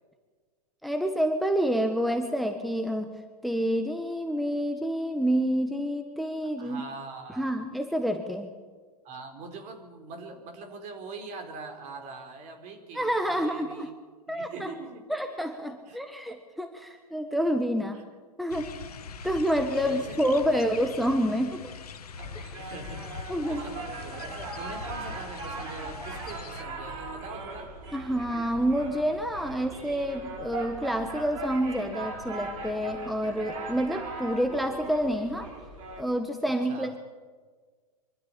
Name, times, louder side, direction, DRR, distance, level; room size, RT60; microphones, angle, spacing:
voice 1, 0.8-3.1 3.4-6.8 7.3-8.5 12.9-13.9 14.3-14.7 15.1-18.0 18.4-18.7 19.2-21.6 22.3-22.5 23.3-23.6 27.9-35.5 36.0-37.0, equal, ahead, 6 dB, 1.5 m, -28 dB
voice 2, 6.6-7.7 9.0-13.9 14.3-15.0 15.9-16.0 17.9-18.0 19.2-19.3 19.8-20.2 20.5-20.7 22.6-27.8 36.5-36.9, right 3 dB, 35° right, 5 dB, 4.3 m, -43 dB
sound 1, 18.5-26.6, left 6 dB, 70° left, 1.3 m, -42 dB
sound 2, 22.2-36.0, right 3 dB, 55° right, 4.7 m, -39 dB
24.5 x 13.5 x 8.8 m, 1.5 s
figure-of-eight pair, 100°, 20 cm